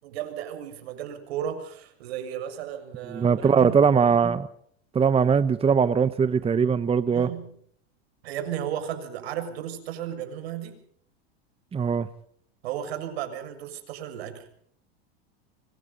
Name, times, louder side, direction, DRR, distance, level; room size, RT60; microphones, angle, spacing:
voice 1, 0.0-3.7 7.1-7.5 8.2-10.8 12.6-14.4, right 10 dB, 75° right, 7 dB, 6.8 m, -34 dB
voice 2, 3.1-4.5 4.9-7.3 11.7-12.1, right 6 dB, 20° right, 14 dB, 1.1 m, -21 dB
26.0 x 25.0 x 4.1 m, 0.62 s
supercardioid pair, 115°, 31 cm